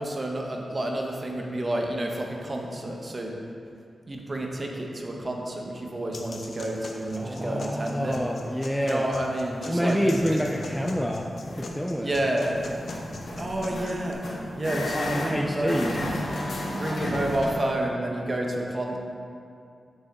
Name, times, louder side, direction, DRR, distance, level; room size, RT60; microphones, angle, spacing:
voice 1, 0.0-3.3 4.1-8.2 8.8-10.4 12.0-12.5 13.4-14.2 14.6-15.8 16.6-19.0, right 1 dB, 30° right, 0 dB, 0.9 m, -30 dB
sound 1, 6.1-14.1, left 2 dB, 65° left, 0.7 m, -41 dB
voice 2, 7.2-9.1 9.7-11.3 11.6-12.1 14.7-15.9, equal, ahead, 1 dB, 0.3 m, -27 dB
sound 2, 10.1-11.0 11.4-11.7 12.4-17.6, left 1 dB, 85° left, 1.8 m, -33 dB
7.0 x 6.8 x 3.6 m, 2.4 s
wide cardioid pair, 120°, 0 cm